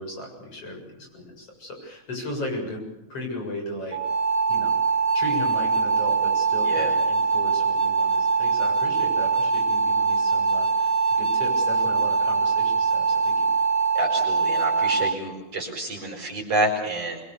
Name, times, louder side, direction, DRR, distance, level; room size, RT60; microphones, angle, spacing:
voice 1, 0.0-4.0 4.5-4.7 5.1-13.5, left 1 dB, 50° left, 2 dB, 8.4 m, -36 dB
sound 1, 3.9-15.1, right 4 dB, 30° right, 2.2 m, -23 dB
voice 2, 14.0-17.2, right 1 dB, 55° right, 1 dB, 5.8 m, -28 dB
26.0 x 23.5 x 6.8 m, 0.88 s
omnidirectional pair, 3.4 m